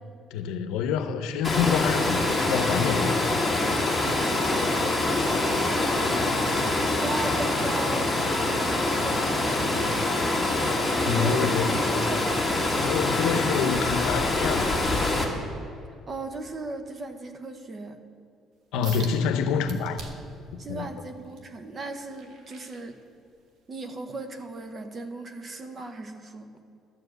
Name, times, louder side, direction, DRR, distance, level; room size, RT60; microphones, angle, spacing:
voice 1, 0.3-3.2 11.0-11.8 12.8-14.8 18.7-20.0 20.7-20.8, left 7 dB, 85° left, 8 dB, 0.7 m, -27 dB
Water, 1.4-15.2, left 2 dB, 5° left, 2.1 m, -25 dB
voice 2, 4.0-4.4 6.0-6.4 6.8-10.5 11.0-11.5 11.9-12.4 16.1-17.9 20.6-23.0 23.7-26.5, right 2 dB, 35° right, 7 dB, 1.0 m, -37 dB
sound 1, 18.8-19.2 19.7-20.4 20.9-23.4 23.9-24.1 24.7-24.8, right 4 dB, 70° right, 1.3 m, -44 dB
12.5 x 4.9 x 7.8 m, 2.5 s
cardioid pair, 105°, 0 cm